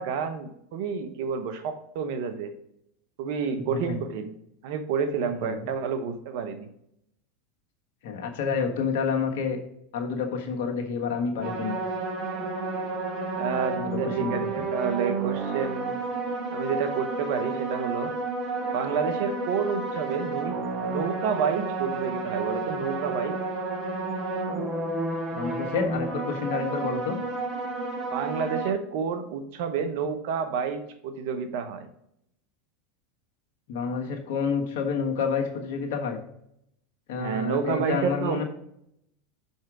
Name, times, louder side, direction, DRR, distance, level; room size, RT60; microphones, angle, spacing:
voice 1, 0.0-2.5 3.2-4.3 4.6-6.7 13.3-16.0 16.5-18.1 18.7-23.4 28.1-31.9 37.2-38.4, right 6 dB, 65° right, 9 dB, 1.0 m, -29 dB
voice 2, 3.5-4.0 5.4-5.7 8.0-9.6 9.9-11.8 13.7-14.5 25.3-27.2 33.7-36.2 37.1-38.4, left 5 dB, 70° left, 3 dB, 1.3 m, -29 dB
sound 1, 11.4-28.7, right 3 dB, 45° right, 1.6 m, -31 dB
5.8 x 5.5 x 4.9 m, 0.76 s
hypercardioid pair, 95°, 0 cm